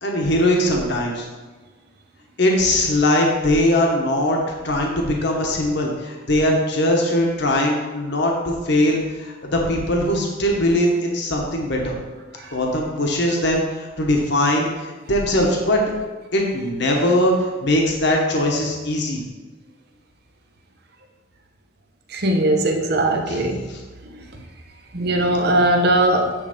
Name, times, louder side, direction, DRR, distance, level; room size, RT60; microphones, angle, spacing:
voice 1, 0.0-1.3 2.4-4.4 4.6-12.0 12.5-15.8 16.3-19.2 23.3-23.4 23.7-23.8, left 1 dB, 60° left, 0 dB, 1.1 m, -20 dB
voice 2, 22.1-23.6 24.9-26.3, right 1 dB, 55° right, 4 dB, 0.9 m, -19 dB
9.9 x 3.4 x 5.1 m, 1.3 s
head